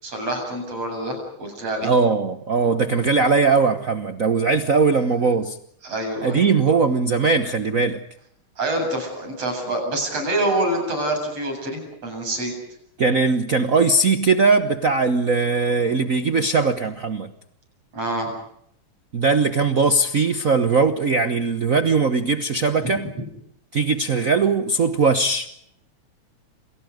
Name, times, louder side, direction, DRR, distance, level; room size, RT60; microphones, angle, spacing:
voice 1, 0.0-1.9 5.8-6.5 8.6-12.5 17.9-18.3, right 1 dB, 55° right, 4 dB, 9.2 m, -26 dB
voice 2, 1.8-5.6 6.2-8.0 13.0-17.3 19.1-23.1 23.7-25.5, right 4 dB, 70° right, 9 dB, 0.7 m, -20 dB
28.5 x 28.5 x 5.2 m, 0.71 s
omnidirectional pair, 3.4 m